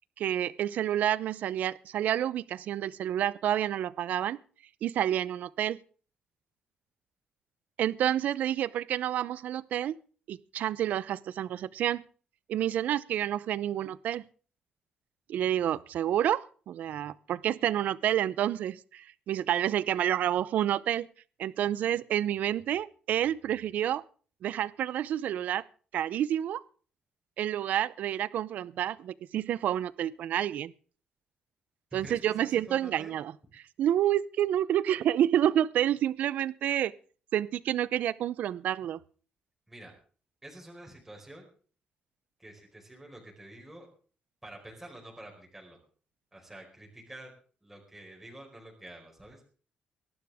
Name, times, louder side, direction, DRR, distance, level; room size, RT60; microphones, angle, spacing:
voice 1, 0.2-4.4 4.8-5.8 7.8-10.0 10.3-12.0 12.5-14.2 15.3-21.1 21.4-24.0 24.4-25.6 25.9-26.6 27.4-30.7 31.9-33.3 33.8-36.9 37.3-39.0, right 11 dB, 70° right, 19 dB, 0.6 m, -29 dB
voice 2, 31.9-33.2 39.7-39.9 40.4-41.5 42.4-43.9 44.4-45.8 46.3-47.3 47.6-49.5, right 1 dB, 5° right, -1 dB, 4.7 m, -48 dB
23.0 x 12.0 x 3.6 m, 0.41 s
cardioid pair, 140°, 3 cm